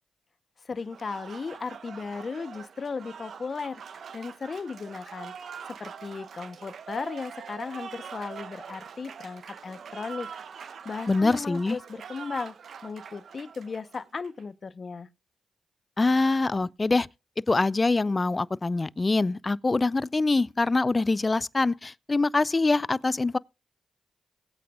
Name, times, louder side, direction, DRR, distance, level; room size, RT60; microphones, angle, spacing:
voice 1, 0.6-3.8 4.1-5.3 5.7-10.3 10.6-12.5 12.8-15.1, left 4 dB, 55° left, 0.8 m, -36 dB
Applause, 0.8-14.4, right 7 dB, 70° right, 0.9 m, -43 dB
voice 2, 11.1-11.8 16.0-17.1 17.5-23.4, left 3 dB, 35° left, 0.5 m, -24 dB
20.0 x 8.5 x 2.4 m
supercardioid pair, 40°, 0 cm